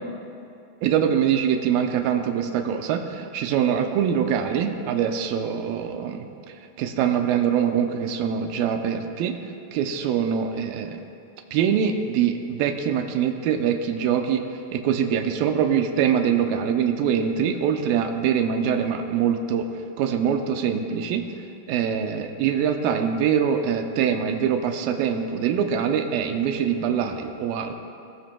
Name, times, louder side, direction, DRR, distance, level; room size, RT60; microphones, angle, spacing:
voice 1, 0.8-6.3 6.8-9.3 9.7-11.0 11.5-14.4 14.7-19.7 20.0-21.2 21.7-27.7, right 8 dB, 80° right, 5 dB, 2.2 m, -23 dB
18.0 x 17.5 x 2.3 m, 2.5 s
omnidirectional pair, 4.8 m